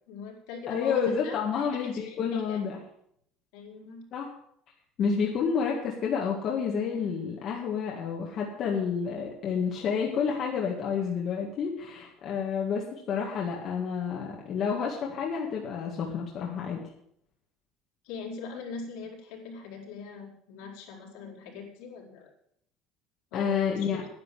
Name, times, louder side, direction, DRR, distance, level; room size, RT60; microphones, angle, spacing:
voice 1, 0.1-1.7 1.9-2.6 3.5-4.1 18.0-22.3 23.3-24.1, left 5 dB, 80° left, -2 dB, 4.6 m, -41 dB
voice 2, 0.7-2.8 4.1-4.3 5.0-16.8 23.3-24.1, left 6 dB, 35° left, -2 dB, 1.9 m, -29 dB
10.5 x 10.5 x 7.6 m, 0.70 s
cardioid pair, 175°, 0 cm